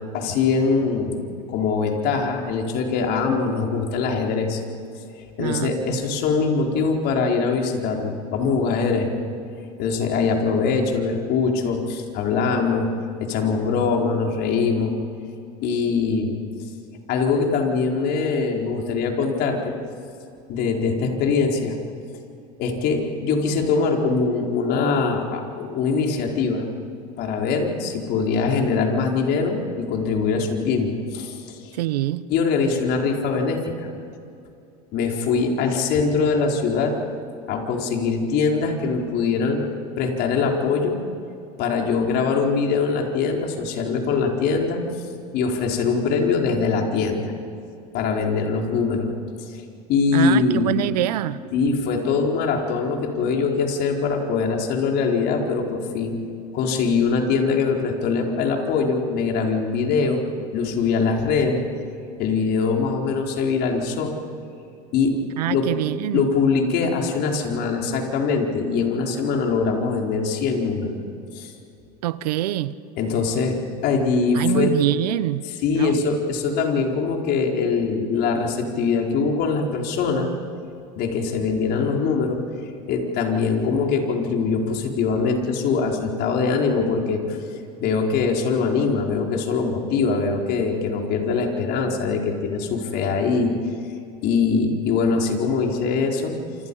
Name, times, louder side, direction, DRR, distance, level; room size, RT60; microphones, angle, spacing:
voice 1, 0.1-1.2 1.5-4.6 5.2-9.1 9.8-12.9 13.2-14.9 15.6-16.4 17.1-19.7 20.5-21.7 22.6-26.7 27.2-31.7 32.3-33.9 34.9-37.0 37.5-39.6 40.0-41.0 41.6-44.8 45.3-47.3 47.9-49.1 49.5-49.6 49.9-50.7 51.5-56.2 56.5-60.2 60.5-61.6 62.2-64.1 64.9-65.2 65.5-65.7 66.1-71.0 71.3-71.5 73.0-74.7 75.4-80.3 81.0-82.4 82.9-87.4 87.8-93.6 94.2-96.3, left 4 dB, 55° left, 4.6 m, -22 dB
voice 2, 5.4-5.7 31.8-32.2 50.1-51.4 65.4-66.2 72.0-72.7 74.3-75.4 75.7-75.9, right 14 dB, 80° right, 1.0 m, -24 dB
27.5 x 27.0 x 5.6 m
hypercardioid pair, 95°, 20 cm